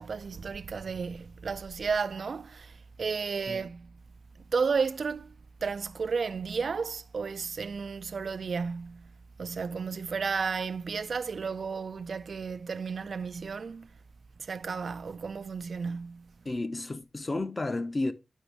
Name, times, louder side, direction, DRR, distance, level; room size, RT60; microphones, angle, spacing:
voice 1, 0.0-3.9 4.5-5.3 5.6-9.1 9.4-13.9 14.4-16.3, right 5 dB, 60° right, 0.4 m, -33 dB
voice 2, 16.4-18.1, left 2 dB, 30° left, 0.7 m, -32 dB
10.0 x 6.1 x 3.3 m
wide cardioid pair, 170°, 0 cm